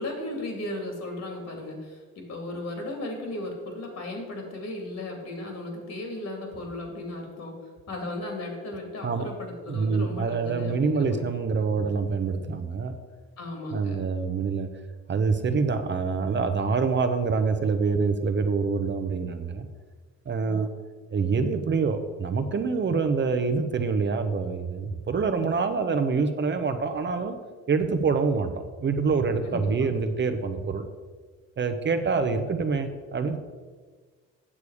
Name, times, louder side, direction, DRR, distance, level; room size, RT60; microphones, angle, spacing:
voice 1, 0.0-7.6 7.9-11.2 11.6-11.8 13.4-14.0 20.4-20.6 29.4-29.9, left 1 dB, 60° left, 2 dB, 2.6 m, -36 dB
voice 2, 9.7-12.9 13.7-14.7 15.1-19.7 20.3-20.7 21.1-27.4 27.7-28.5 28.8-30.9 31.6-33.4, right 4 dB, 40° right, 8 dB, 0.7 m, -26 dB
8.5 x 6.8 x 4.8 m, 1.4 s
cardioid pair, 90°, 30 cm